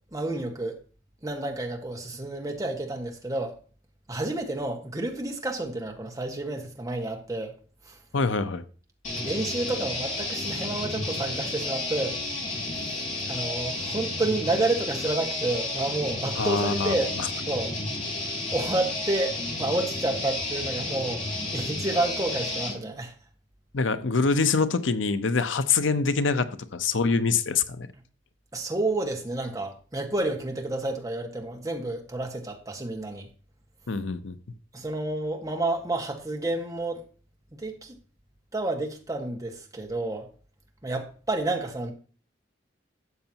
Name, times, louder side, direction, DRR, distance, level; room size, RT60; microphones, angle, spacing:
voice 1, 0.1-0.8 1.2-3.6 4.1-7.5 7.9-8.0 9.2-12.2 13.3-17.1 17.5-17.7 18.5-21.2 21.5-23.1 28.5-33.3 34.7-37.0 37.5-37.9 38.5-40.3 40.8-41.9, right 2 dB, 20° right, 1.7 m, -30 dB
voice 2, 8.1-8.6 16.3-17.0 23.7-27.9 33.9-34.4, left 4 dB, 85° left, 0.8 m, -25 dB
sound 1, 9.0-22.8, left 2 dB, 40° left, 4.3 m, -32 dB
12.5 x 7.9 x 2.9 m
head